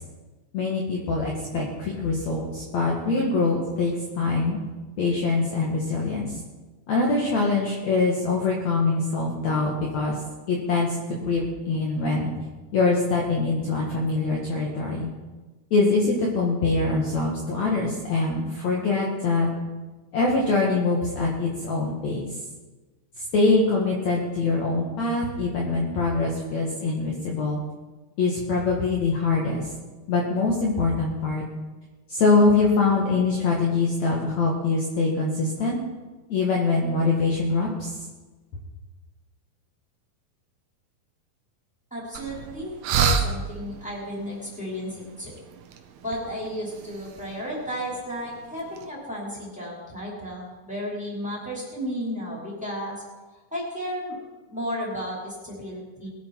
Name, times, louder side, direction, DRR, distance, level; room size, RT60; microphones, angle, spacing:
voice 1, 0.5-4.6 5.0-6.4 6.9-10.2 10.5-12.3 12.7-15.1 15.7-19.5 20.1-22.4 23.2-27.6 28.2-29.7 30.1-31.4 32.1-35.8 36.3-38.0, left 3 dB, 55° left, -2 dB, 2.7 m, -24 dB
voice 2, 41.9-45.3 46.0-53.0 53.5-54.2 54.5-56.1, equal, ahead, -5 dB, 4.9 m, -33 dB
sound 1, 42.1-48.9, right 6 dB, 75° right, 2.9 m, -31 dB
21.5 x 11.5 x 4.7 m, 1.2 s
omnidirectional pair, 4.4 m